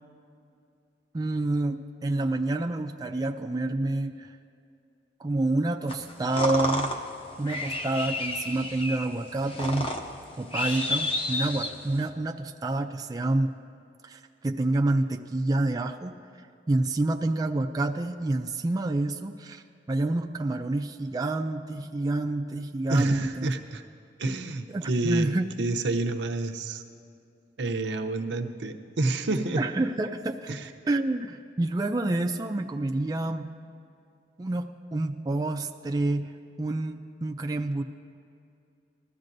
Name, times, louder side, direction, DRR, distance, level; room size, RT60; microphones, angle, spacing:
voice 1, 1.1-4.3 5.2-6.9 7.4-9.9 10.4-13.5 14.0-16.2 16.7-19.6 19.9-23.5 24.7-25.5 29.6-30.5 30.8-33.5 34.4-36.3 36.6-37.8, right 2 dB, 20° right, 3 dB, 0.4 m, -28 dB
sound 1, 5.9-12.1, left 1 dB, 30° left, 0.9 m, -31 dB
voice 2, 22.9-23.8 24.2-26.8 27.6-29.6 30.5-30.7, right 2 dB, 85° right, 4 dB, 0.7 m, -29 dB
20.0 x 13.5 x 2.6 m, 2.5 s
head